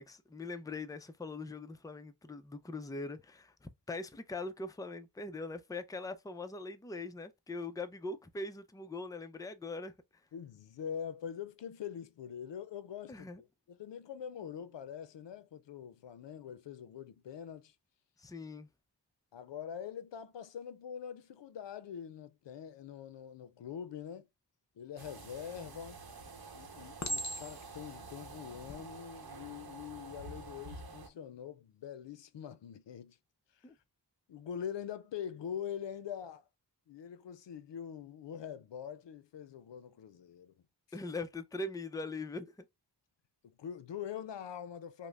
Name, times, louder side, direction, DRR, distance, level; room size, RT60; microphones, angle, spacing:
voice 1, 0.0-9.9 13.1-13.4 18.2-18.7 33.6-33.7 40.9-42.5, left 2 dB, 10° left, 0.4 m, -41 dB
voice 2, 10.3-17.7 19.3-24.3 24.8-26.0 26.5-33.2 33.5-33.6 34.3-36.4 36.9-40.5 40.9-41.0 43.6-45.1, left 8 dB, 85° left, 0.5 m, -44 dB
sound 1, 25.0-31.1, right 3 dB, 60° right, 0.8 m, -49 dB
Chink clink, 25.5-26.0 27.0-27.8 28.5-28.8, equal, 40° left, 0.7 m, -38 dB
5.3 x 2.1 x 2.3 m
wide cardioid pair, 55°, 42 cm